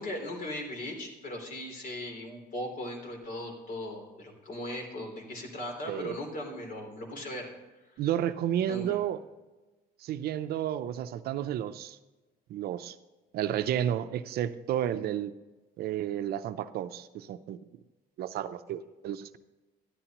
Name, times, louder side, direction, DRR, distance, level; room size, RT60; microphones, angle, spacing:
voice 1, 0.0-7.5 8.7-9.0, left 1 dB, 55° left, 3 dB, 3.2 m, -38 dB
voice 2, 5.9-6.2 8.0-9.2 10.0-12.0 12.5-13.0 13.3-15.3 15.8-17.6 18.2-19.4, right 11 dB, 65° right, 11 dB, 0.6 m, -31 dB
12.5 x 11.0 x 3.0 m, 1.1 s
cardioid pair, 110°, 17 cm